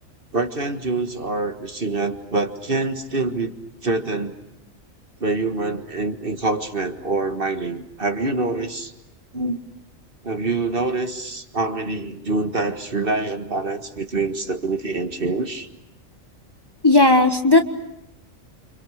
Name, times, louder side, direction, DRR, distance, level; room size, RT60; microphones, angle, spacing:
voice 1, 0.3-3.6 3.8-4.4 5.2-8.9 9.3-9.6 10.2-15.7, right 3 dB, 45° right, 7 dB, 1.9 m, -25 dB
voice 2, 16.8-17.7, left 2 dB, 20° left, 5 dB, 1.5 m, -15 dB
29.0 x 27.0 x 6.5 m, 0.86 s
omnidirectional pair, 1.4 m